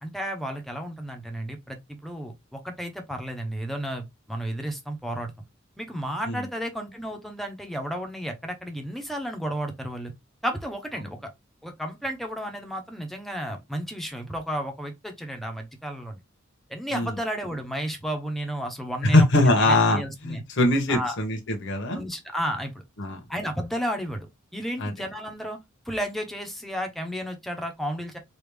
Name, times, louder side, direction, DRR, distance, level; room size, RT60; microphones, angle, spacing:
voice 1, 0.0-5.3 5.8-10.1 10.4-11.3 11.6-16.2 16.7-20.4 20.9-21.2 21.9-22.8 23.3-24.3 24.5-25.6 25.9-28.2, equal, ahead, 0.7 m, -32 dB
voice 2, 19.1-22.0 23.0-23.2 24.8-24.9, left 2 dB, 60° left, 0.9 m, -22 dB
3.3 x 2.4 x 3.3 m
head